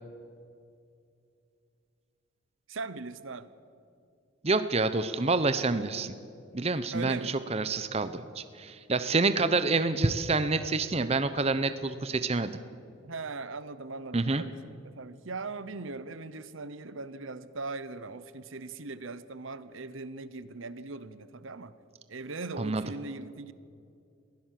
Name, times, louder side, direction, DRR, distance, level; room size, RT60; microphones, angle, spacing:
voice 1, 2.7-3.5 6.9-7.3 13.0-21.7 22.1-23.5, right 3 dB, 70° right, 15 dB, 0.9 m, -40 dB
voice 2, 4.4-6.1 6.5-12.6 14.1-14.4 22.6-22.8, right 3 dB, 30° right, 11 dB, 0.7 m, -27 dB
22.0 x 16.0 x 7.6 m, 2.4 s
head